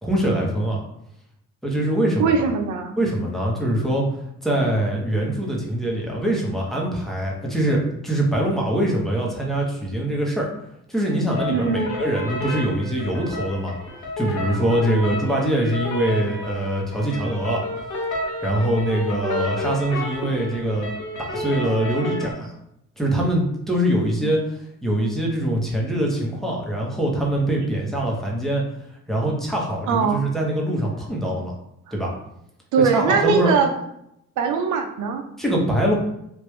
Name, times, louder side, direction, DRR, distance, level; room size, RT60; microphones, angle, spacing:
voice 1, 0.0-0.8 1.6-2.5 3.0-10.5 10.9-13.7 14.2-17.6 18.4-20.9 21.3-22.5 23.0-28.6 29.1-31.5 31.9-32.1 32.8-33.6 35.4-35.9, right 1 dB, ahead, -3 dB, 1.0 m, -23 dB
voice 2, 2.2-2.9 11.5-12.0 20.2-20.4 29.9-30.2 32.7-33.7 34.4-35.2, right 5 dB, 75° right, 5 dB, 0.6 m, -21 dB
sound 1, 11.3-22.3, left 1 dB, 80° left, 1.0 m, -30 dB
3.3 x 2.5 x 3.2 m, 0.78 s
cardioid pair, 90°, 30 cm